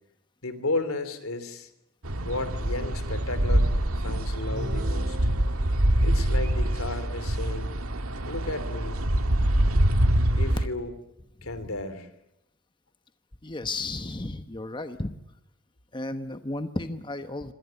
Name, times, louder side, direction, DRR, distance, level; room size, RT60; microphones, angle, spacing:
voice 1, 0.4-1.7 2.2-3.7 4.0-5.3 6.0-7.7 8.3-9.1 10.4-10.9 11.4-12.1, left 2 dB, 80° left, 12 dB, 3.0 m, -33 dB
sound 1, 2.0-10.7, right 1 dB, 85° right, 1.9 m, -25 dB
sound 2, 4.4-6.0, right 1 dB, 55° right, 2.0 m, -39 dB
voice 2, 13.4-15.2 15.9-17.5, left 2 dB, 20° left, 9 dB, 1.1 m, -33 dB
26.0 x 18.0 x 9.2 m, 0.86 s
head